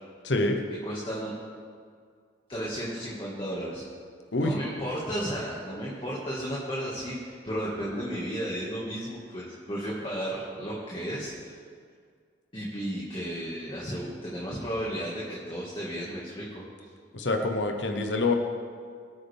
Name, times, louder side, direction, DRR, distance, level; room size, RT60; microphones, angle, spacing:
voice 1, 0.2-0.6 4.3-4.6 17.1-18.3, left 2 dB, 70° left, 4 dB, 1.1 m, -26 dB
voice 2, 0.8-1.3 2.5-3.8 4.4-11.5 12.5-16.9, equal, 30° left, -6 dB, 2.0 m, -34 dB
22.5 x 8.7 x 3.6 m, 2.1 s
head